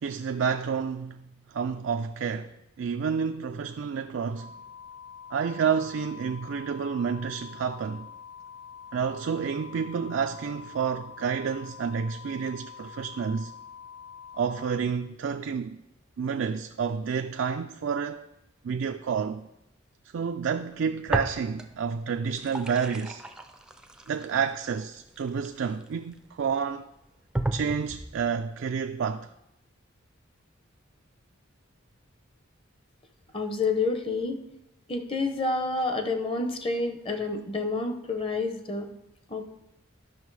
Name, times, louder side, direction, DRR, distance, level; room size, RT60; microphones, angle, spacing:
voice 1, 0.0-4.5 5.3-8.1 8.9-13.5 14.3-15.8 16.2-18.2 18.6-19.5 20.1-23.2 24.1-26.9 27.5-29.3 37.1-37.2, right 6 dB, 65° right, 0.3 m, -29 dB
sound 1, 4.3-14.7, left 7 dB, 55° left, 3.0 m, -46 dB
sound 2, 21.1-21.9 22.2-26.1 26.7-26.8 27.3-28.2, right 1 dB, 5° right, 0.5 m, -34 dB
voice 2, 33.3-34.4 34.9-38.9 39.3-39.5, left 3 dB, 25° left, 0.8 m, -29 dB
11.0 x 6.1 x 4.7 m
head